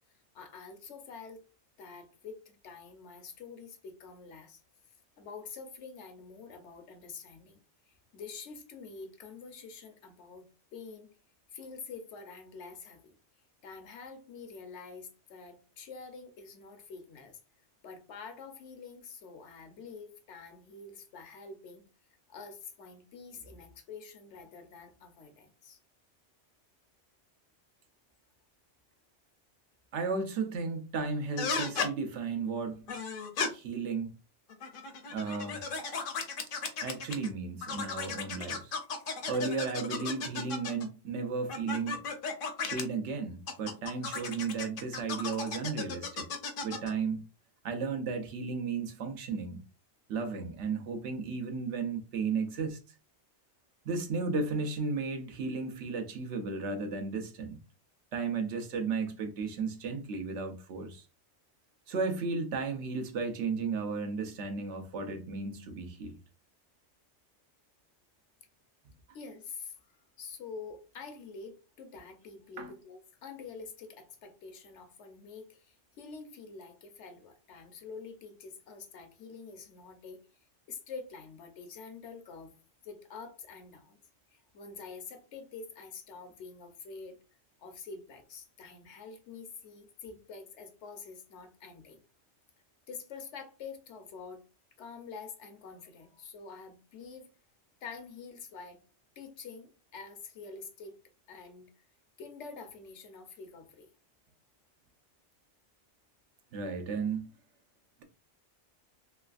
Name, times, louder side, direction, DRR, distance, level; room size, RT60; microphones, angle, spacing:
voice 1, 0.1-1.4 1.8-4.6 4.9-10.4 10.7-11.1 11.5-13.2 13.6-17.4 17.8-21.8 22.3-25.8 69.1-80.2 80.7-82.6 82.8-84.0 84.3-87.2 87.6-92.0 92.9-94.4 94.8-97.3 97.8-98.8 99.2-100.9 101.3-101.8 102.2-103.9, left 5 dB, 75° left, 1.0 m, -47 dB
voice 2, 29.9-32.8 33.5-34.1 35.1-35.7 36.8-38.8 39.3-42.0 42.7-46.3 46.6-47.2 47.6-49.6 50.1-52.8 53.8-57.6 58.1-61.0 61.9-66.2 72.6-72.7 106.5-107.3, right 4 dB, 75° right, 1.0 m, -34 dB
sound 1, 31.4-31.9 32.9-33.5 34.5-37.3 37.6-40.9 41.5-42.8 43.5-46.9, left 5 dB, 55° left, 0.7 m, -35 dB
3.2 x 3.1 x 2.4 m
omnidirectional pair, 1.2 m